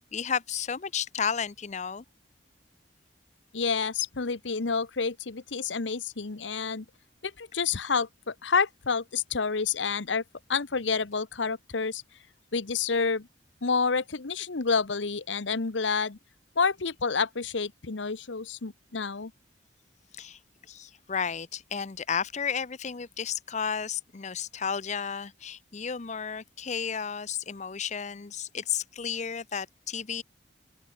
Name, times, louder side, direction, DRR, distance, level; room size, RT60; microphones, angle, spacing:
voice 1, 0.1-2.0 20.1-20.4 20.7-30.2, left 7 dB, 40° left, 0.7 m, -32 dB
voice 2, 3.5-6.8 7.2-10.2 10.5-12.0 12.5-13.3 13.6-16.2 16.6-19.3, left 5 dB, 85° left, 1.0 m, -29 dB
open air
head